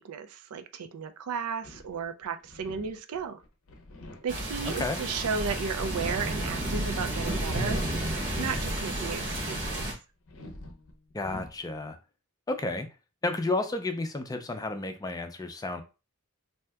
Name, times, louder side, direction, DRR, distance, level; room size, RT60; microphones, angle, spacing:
voice 1, 0.0-3.4 4.2-9.9, right 6 dB, 80° right, 9 dB, 0.4 m, -34 dB
sound 1, 1.6-8.9 9.2-9.9 10.3-11.7, left 1 dB, 65° left, 0.6 m, -48 dB
sound 2, 4.3-9.9, right 1 dB, 55° right, 1.1 m, -31 dB
voice 2, 11.1-12.0 12.5-12.9 13.2-15.8, left 2 dB, 15° left, 7 dB, 0.4 m, -31 dB
2.7 x 2.1 x 3.4 m, 0.30 s
head